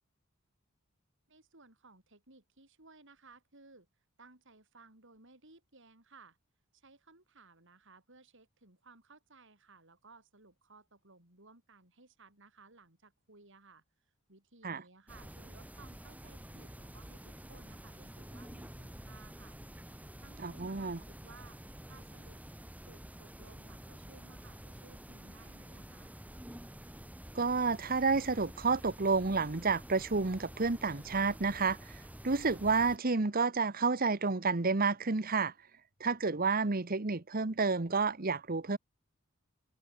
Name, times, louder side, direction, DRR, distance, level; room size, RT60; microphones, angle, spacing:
voice 1, 1.3-3.9 4.2-6.4 6.7-13.8 14.3-19.6 20.2-22.4 22.8-26.1, right 3 dB, 60° right, 6.8 m, -59 dB
sound 1, 15.1-33.0, equal, 5° right, 3.4 m, -49 dB
voice 2, 20.4-21.0 27.3-31.9 32.2-35.5 36.0-38.8, right 4 dB, 45° right, 1.1 m, -30 dB
head